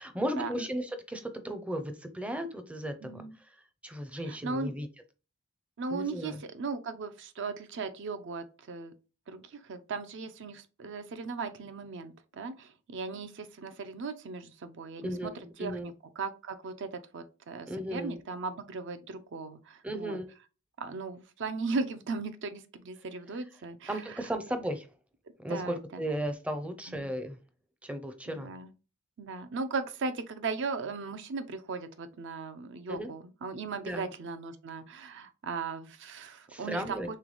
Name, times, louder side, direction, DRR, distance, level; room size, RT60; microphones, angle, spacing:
voice 1, 0.0-4.9 5.9-6.4 15.0-15.9 17.7-18.2 19.8-20.3 23.9-24.9 25.4-27.4 27.8-28.5 32.9-33.1 33.8-34.1 36.5-37.1, equal, 5° right, 0.5 m, -35 dB
voice 2, 3.0-3.3 4.2-4.7 5.8-8.9 9.3-15.3 15.6-20.2 20.8-24.0 25.5-26.0 26.9-27.1 28.3-28.7 29.2-37.2, right 4 dB, 55° right, 0.5 m, -37 dB
3.4 x 3.2 x 3.8 m
head